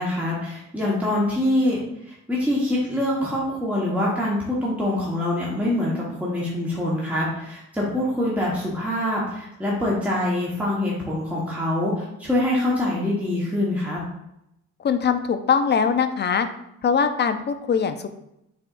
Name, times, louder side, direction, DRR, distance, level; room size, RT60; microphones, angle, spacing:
voice 1, 0.0-14.0, left 1 dB, 5° right, -6 dB, 1.2 m, -25 dB
voice 2, 14.8-16.5 16.8-18.1, left 6 dB, 35° left, 9 dB, 0.5 m, -22 dB
5.9 x 3.5 x 2.5 m, 0.82 s
cardioid pair, 90°, 30 cm